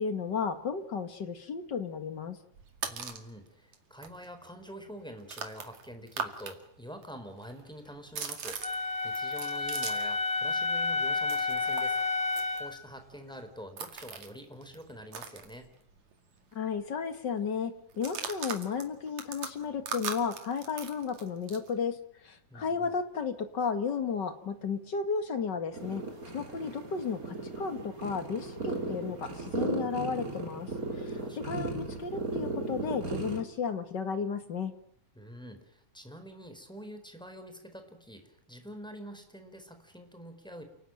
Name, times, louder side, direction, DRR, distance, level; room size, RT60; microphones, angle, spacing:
voice 1, 0.0-2.4 16.5-26.0 26.3-30.7 31.0-34.7, left 6 dB, 40° left, 9 dB, 2.0 m, -33 dB
sound 1, 2.5-3.3 3.7-3.8 4.0-6.6 6.8-10.2 10.5-16.1 16.4-16.5 16.8-17.2 17.9-21.7, right 6 dB, 70° right, 3.5 m, -41 dB
voice 2, 2.9-12.0 12.5-15.7 22.5-23.0 31.1-31.7 35.2-40.6, equal, ahead, 7 dB, 4.0 m, -46 dB
Wind instrument woodwind instrument, 8.6-12.8, left 3 dB, 20° left, 1.1 m, -30 dB
sound 2, 25.7-33.4, right 2 dB, 30° right, 3.5 m, -36 dB
29.5 x 18.5 x 9.2 m, 0.69 s
omnidirectional pair, 3.4 m